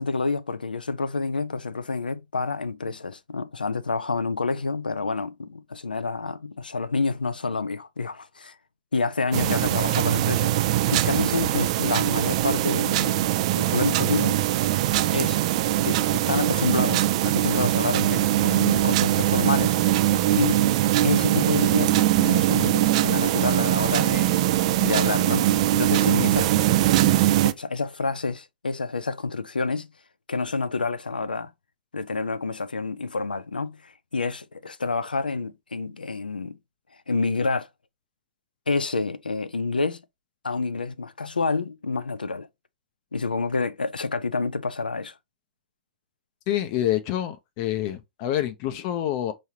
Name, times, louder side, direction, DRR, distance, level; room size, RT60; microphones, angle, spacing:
voice 1, 0.0-8.5 8.9-10.5 10.9-13.2 13.6-14.4 15.1-15.4 15.8-19.8 20.4-20.6 21.0-24.3 24.8-26.5 27.0-27.2 27.4-29.9 30.3-31.5 31.9-36.6 37.1-37.7 38.7-40.0 40.4-42.5 43.1-45.1, left 4 dB, 80° left, 0.5 m, -28 dB
sound 1, 9.3-27.5, right 14 dB, 45° right, 0.4 m, -22 dB
voice 2, 46.5-49.3, left 12 dB, 40° left, 0.6 m, -27 dB
5.5 x 3.1 x 2.7 m
figure-of-eight pair, 110°, 5 cm